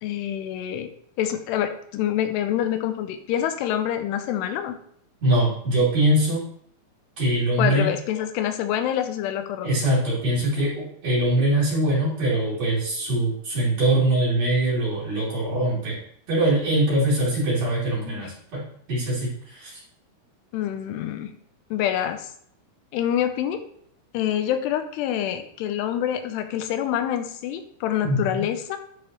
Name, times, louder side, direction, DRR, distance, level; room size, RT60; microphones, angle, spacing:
voice 1, 0.0-0.9 1.2-4.8 7.6-9.7 18.1-18.3 20.5-21.3 21.7-22.3 22.9-23.6 24.1-28.8, left 10 dB, 90° left, 8 dB, 2.8 m, -26 dB
voice 2, 5.2-6.4 7.2-7.9 9.6-16.0 16.3-18.6 18.9-19.8 28.0-28.4, right 1 dB, 45° right, -7 dB, 4.1 m, -22 dB
10.5 x 4.9 x 3.1 m, 0.64 s
omnidirectional pair, 4.7 m